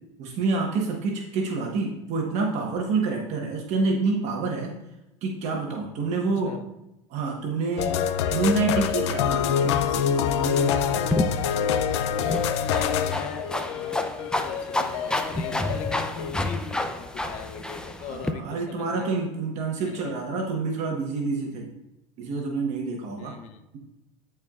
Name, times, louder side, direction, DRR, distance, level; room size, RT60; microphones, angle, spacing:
voice 1, 0.2-4.7 5.2-6.6 7.1-8.0 8.3-11.0 18.0-21.7 22.2-23.3, right 4 dB, 55° right, 1 dB, 1.3 m, -28 dB
sound 1, 7.8-16.3, left 8 dB, 85° left, 0.5 m, -26 dB
sound 2, 11.1-18.3, left 1 dB, 5° left, 0.6 m, -30 dB
voice 2, 12.6-19.1 19.8-20.1 23.2-23.6, left 6 dB, 55° left, 7 dB, 0.8 m, -39 dB
13.5 x 4.6 x 2.5 m, 0.93 s
supercardioid pair, 110°, 14 cm